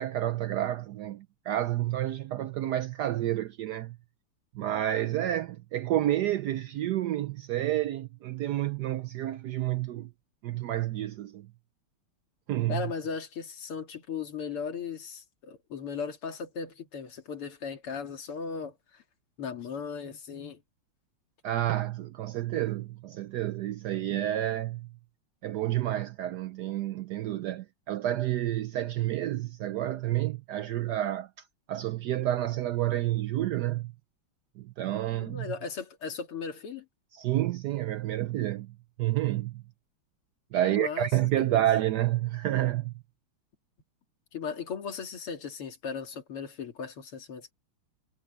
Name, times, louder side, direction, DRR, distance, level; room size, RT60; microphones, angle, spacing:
voice 1, 0.0-4.0 4.5-10.1 10.4-11.5 12.5-12.8 21.4-24.9 25.4-31.3 31.7-33.9 34.6-35.5 37.1-39.6 40.5-42.9, right 13 dB, 85° right, 0.9 m, -29 dB
voice 2, 12.7-19.0 19.4-20.6 35.2-36.9 40.6-41.1 41.4-41.7 44.3-47.5, left 6 dB, 90° left, 3.2 m, -37 dB
omnidirectional pair, 2.4 m